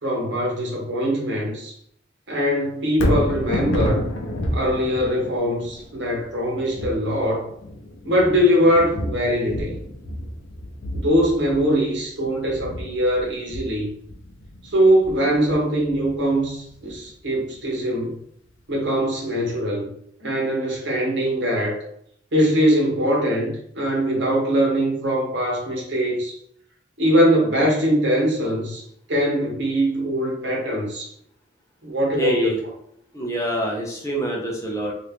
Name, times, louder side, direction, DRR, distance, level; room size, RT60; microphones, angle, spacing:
voice 1, 0.0-1.7 2.3-4.0 4.5-7.5 8.0-9.8 10.9-13.9 14.6-18.2 18.7-19.9 20.2-21.8 22.3-26.3 27.0-28.8 29.1-31.1 31.8-32.5, equal, 65° right, -2 dB, 1.1 m, -22 dB
Thunder, 2.9-17.1 17.6-17.7, left 1 dB, 85° left, 0.6 m, -30 dB
voice 2, 32.2-32.6 33.1-34.9, right 1 dB, 15° left, -2 dB, 0.6 m, -25 dB
2.8 x 2.5 x 3.4 m, 0.68 s
head